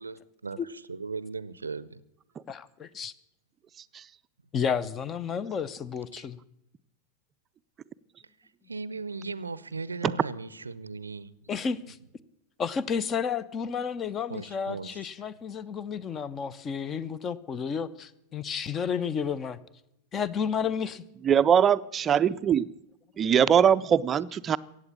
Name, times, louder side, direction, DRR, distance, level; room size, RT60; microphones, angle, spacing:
voice 1, 0.0-2.0 6.1-6.2 8.7-11.5 14.3-15.1, right 4 dB, 75° right, 0.6 m, -38 dB
voice 2, 2.5-3.1 4.5-6.4 11.5-12.0 12.6-19.6 20.1-21.0, left 6 dB, 25° left, 0.8 m, -31 dB
voice 3, 21.2-22.7 23.2-24.6, right 8 dB, 25° right, 0.5 m, -22 dB
15.5 x 8.8 x 8.6 m
figure-of-eight pair, 90°, 0 cm